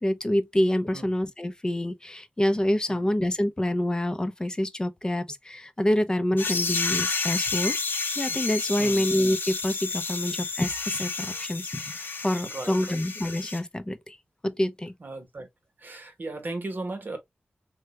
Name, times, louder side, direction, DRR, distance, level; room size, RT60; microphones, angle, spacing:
voice 1, 0.0-7.8 8.2-14.2 14.4-14.9, left 1 dB, 20° left, 0.5 m, -27 dB
sound 1, 6.4-13.6, left 4 dB, 70° left, 0.7 m, -30 dB
voice 2, 8.8-9.1 12.4-13.0 15.0-15.5 15.8-17.2, right 2 dB, 55° right, 0.9 m, -36 dB
3.3 x 2.2 x 2.8 m
wide cardioid pair, 70°, 4 cm